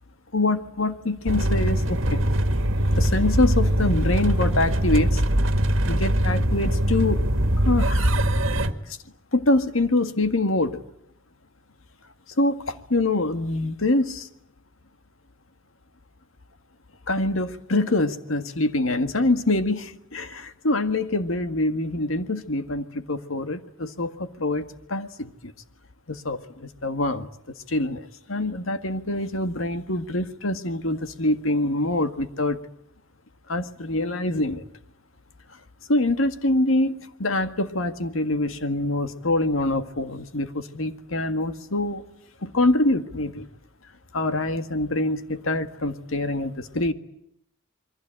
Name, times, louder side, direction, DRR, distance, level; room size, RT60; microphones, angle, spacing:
voice 1, 0.3-2.3 2.9-5.2 5.9-7.2 7.6-8.2 8.9-9.0 9.3-10.8 12.4-14.3 17.1-25.5 26.1-27.3 27.7-32.6 33.5-34.6 35.9-42.0 42.4-43.5 44.1-46.9, left 2 dB, 85° left, 9 dB, 1.9 m, -25 dB
sound 1, 1.3-8.7, right 1 dB, 70° right, 1.9 m, -22 dB
28.0 x 23.0 x 9.0 m, 0.73 s
head